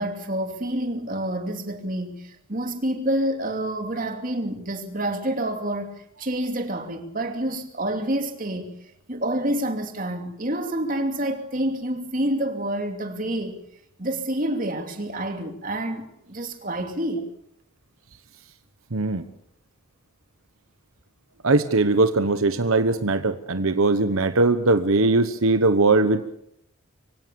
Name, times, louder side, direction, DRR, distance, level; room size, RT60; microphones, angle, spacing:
voice 1, 0.0-8.7 9.1-13.6 14.0-17.3, right 1 dB, 40° right, 2.8 m, -28 dB
voice 2, 18.9-19.2 21.4-26.3, right 3 dB, 85° right, 1.2 m, -20 dB
24.5 x 17.0 x 7.0 m
head